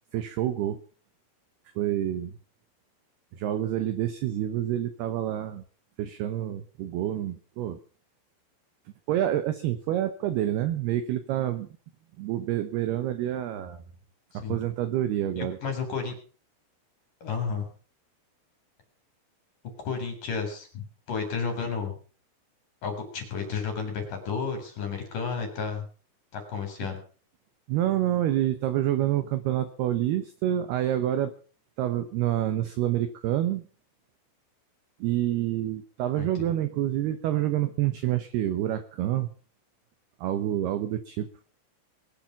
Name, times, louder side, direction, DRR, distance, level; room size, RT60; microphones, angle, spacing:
voice 1, 0.1-0.8 1.8-2.3 3.4-5.6 6.0-7.8 9.1-11.7 12.2-13.8 14.3-15.6 27.7-31.3 31.8-33.6 35.0-39.3 40.2-41.3, right 12 dB, 80° right, 11 dB, 2.3 m, -27 dB
voice 2, 15.4-16.1 17.2-17.7 19.8-22.0 22.8-25.9 26.3-27.0 36.2-36.5, left 5 dB, 45° left, 5 dB, 5.0 m, -32 dB
21.0 x 10.5 x 5.9 m, 0.40 s
omnidirectional pair, 5.9 m